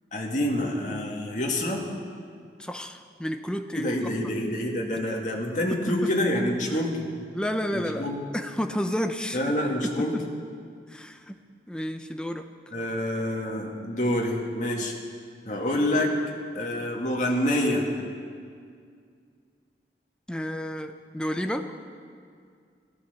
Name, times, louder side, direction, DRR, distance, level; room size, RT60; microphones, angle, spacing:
voice 1, 0.1-1.9 3.7-7.1 7.7-8.2 9.3-10.1 12.7-14.9 15.4-16.1 16.5-17.9, left 1 dB, 45° left, 0 dB, 2.1 m, -27 dB
voice 2, 2.6-4.1 5.7-6.1 6.7-6.8 7.3-8.1 8.3-9.4 9.8-10.2 10.9-11.3 11.7-12.7 20.3-21.7, equal, 5° left, 6 dB, 0.7 m, -31 dB
16.0 x 13.5 x 6.8 m, 2.2 s
head